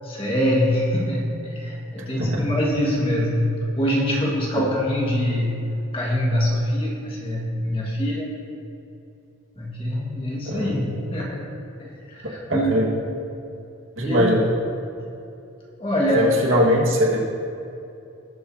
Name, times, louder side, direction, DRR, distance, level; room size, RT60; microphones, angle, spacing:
voice 1, 0.0-8.4 9.6-11.4 11.8-12.8 14.0-14.5 15.8-16.3, equal, 25° left, -3 dB, 1.8 m, -24 dB
voice 2, 12.5-12.9 14.0-14.4 16.1-17.2, equal, 65° right, -2 dB, 1.8 m, -20 dB
18.5 x 7.9 x 2.8 m, 2.7 s
head